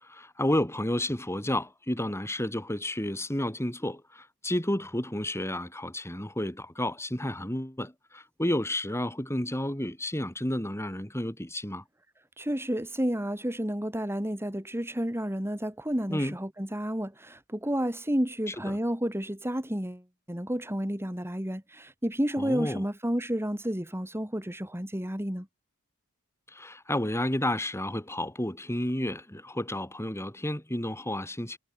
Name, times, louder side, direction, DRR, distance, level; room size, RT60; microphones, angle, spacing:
voice 1, 0.0-11.8 16.1-16.4 18.6-18.8 22.4-22.8 26.5-31.6, left 1 dB, 10° left, 5.6 m, -31 dB
voice 2, 12.4-20.0 20.3-25.5, equal, 10° right, 4.5 m, -31 dB
head